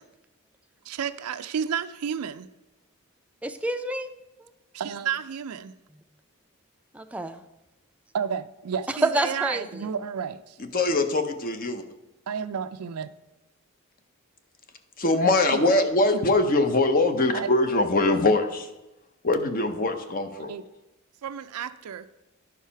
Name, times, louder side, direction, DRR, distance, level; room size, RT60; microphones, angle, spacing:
voice 1, 0.9-2.5 4.7-5.7 8.1-10.6 12.3-13.1 15.5-15.6 16.1-16.2 17.3-17.5 20.4-20.6 21.2-22.1, right 7 dB, 90° right, 0.4 m, -31 dB
voice 2, 3.4-4.1 4.4-4.5 6.9-7.4 8.9-9.9, right 2 dB, 5° right, 0.4 m, -28 dB
voice 3, 10.6-11.8 15.0-18.7 19.2-20.5, left 2 dB, 40° left, 0.8 m, -22 dB
11.0 x 4.8 x 5.6 m
head